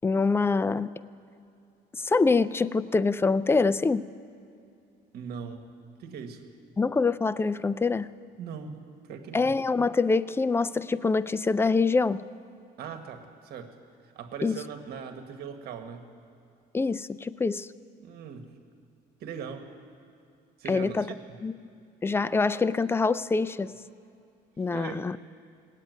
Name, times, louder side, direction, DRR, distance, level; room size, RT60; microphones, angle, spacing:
voice 1, 0.0-0.9 1.9-4.0 6.8-8.1 9.3-12.2 14.4-14.6 16.7-17.7 20.7-21.0 21.4-21.5 22.0-23.7 24.6-25.2, left 4 dB, 15° left, 16 dB, 0.4 m, -25 dB
voice 2, 5.1-5.7 6.0-6.5 8.4-8.7 9.0-9.5 12.8-13.8 14.1-16.1 18.0-18.6 19.2-19.7 20.6-21.4 24.7-25.1, right 6 dB, 70° right, 6 dB, 1.5 m, -40 dB
18.5 x 8.3 x 9.3 m, 2.5 s
cardioid pair, 110°, 17 cm